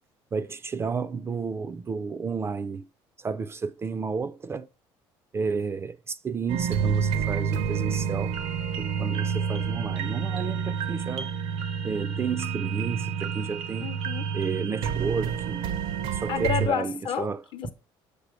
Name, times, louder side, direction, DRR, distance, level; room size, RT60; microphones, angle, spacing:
voice 1, 0.3-2.8 3.2-4.7 5.3-8.4 8.8-11.3 11.8-13.9 14.3-15.7 16.1-17.4, right 5 dB, 25° right, 0.4 m, -32 dB
sound 1, 6.5-16.7, right 7 dB, 70° right, 0.7 m, -29 dB
voice 2, 13.8-14.3 16.3-17.7, left 8 dB, 55° left, 0.7 m, -30 dB
6.8 x 4.8 x 3.1 m
cardioid pair, 110°, 10 cm